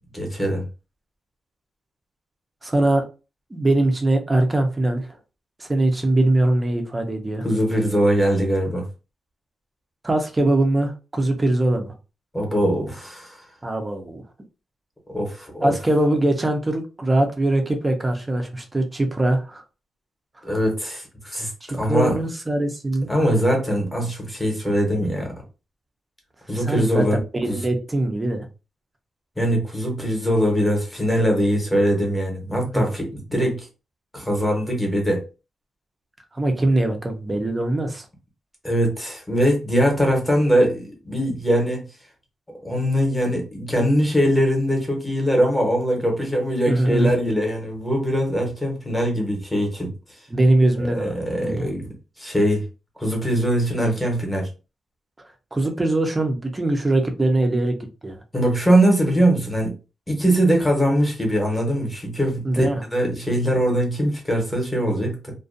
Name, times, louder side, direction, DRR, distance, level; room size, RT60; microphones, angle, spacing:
voice 1, 0.1-0.7 7.4-8.9 12.3-13.4 15.1-15.7 20.4-22.2 23.1-25.3 26.5-27.2 27.5-27.6 29.4-33.7 34.1-35.2 38.6-41.8 42.6-49.9 50.8-51.8 52.2-52.6 53.0-54.5 58.3-59.7 60.1-62.7 62.9-65.3, equal, 10° left, 0 dB, 0.9 m, -22 dB
voice 2, 2.6-3.0 3.5-5.1 5.6-7.4 10.0-11.9 13.6-14.2 15.6-19.6 21.6-23.1 26.5-28.5 32.7-32.8 36.3-38.1 46.7-47.1 50.3-51.1 51.4-51.7 55.5-57.8 58.0-58.2 62.4-62.8, right 1 dB, 15° right, 4 dB, 0.5 m, -22 dB
2.5 x 2.2 x 2.5 m, 0.31 s
wide cardioid pair, 140°, 0 cm